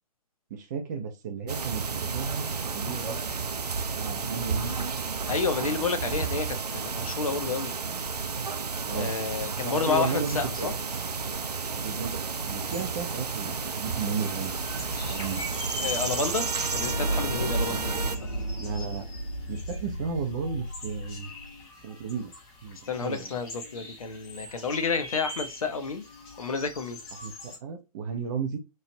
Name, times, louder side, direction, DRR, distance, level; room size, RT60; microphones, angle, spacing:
voice 1, 0.5-3.2 3.9-4.9 5.5-6.3 8.8-9.1 9.6-10.7 11.7-12.1 12.4-14.7 15.1-15.4 17.7-17.8 18.6-19.1 19.5-21.3 21.8-22.3 22.6-23.4 27.2-28.6, right 6 dB, 30° right, 0.6 m, -34 dB
sound 1, 1.5-18.2, right 5 dB, 80° right, 0.4 m, -32 dB
voice 2, 5.3-6.5 6.9-7.7 8.9-10.7 15.8-16.5 16.7-18.0 22.9-26.0 26.4-27.0, left 5 dB, 60° left, 0.7 m, -30 dB
sound 2, 12.7-27.6, left 2 dB, 15° left, 0.6 m, -43 dB
sound 3, 14.4-21.6, right 1 dB, 90° left, 1.4 m, -34 dB
3.1 x 2.4 x 2.8 m
figure-of-eight pair, 125°, 20 cm